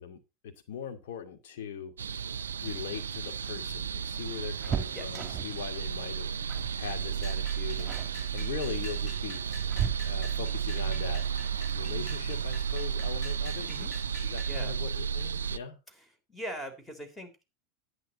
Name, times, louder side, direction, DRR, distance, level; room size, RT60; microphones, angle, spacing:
voice 1, 0.0-1.9 2.6-7.9 8.3-9.4 10.0-11.2 11.7-13.9 14.3-15.8, left 7 dB, 60° left, 5 dB, 2.3 m, -40 dB
sound 1, 2.0-15.6, right 7 dB, 75° right, 0.5 m, -33 dB
sound 2, 3.0-5.7 6.5-6.8 7.1-7.4 7.8-8.2 9.0-10.5 12.2-12.3 12.7-12.8 14.0-14.4 14.7-14.8 15.1-15.3, right 8 dB, 25° right, 2.0 m, -37 dB
voice 2, 4.9-5.3 13.7-13.9 14.5-14.8 15.9-17.4, equal, 10° left, 8 dB, 3.4 m, -42 dB
sound 3, 7.2-14.6, equal, 25° left, 6.7 m, -48 dB
11.0 x 9.4 x 4.1 m, 0.27 s
figure-of-eight pair, 85°, 0 cm